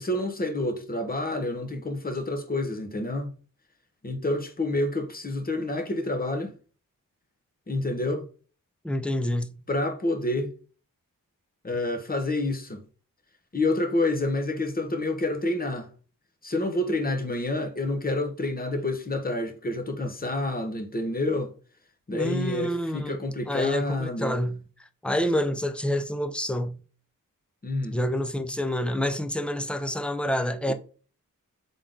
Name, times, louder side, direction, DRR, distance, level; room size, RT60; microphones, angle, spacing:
voice 1, 0.0-3.3 4.0-6.5 7.7-8.3 9.7-10.5 11.6-12.8 13.5-15.9 16.4-21.5 22.1-24.4 27.6-28.0 30.7-30.8, left 2 dB, 25° left, 0.9 m, -28 dB
voice 2, 8.8-9.6 22.1-23.2 23.5-24.6 25.0-26.8 27.9-30.7, left 1 dB, 5° left, 0.4 m, -28 dB
3.8 x 3.7 x 3.6 m
wide cardioid pair, 95°, 33 cm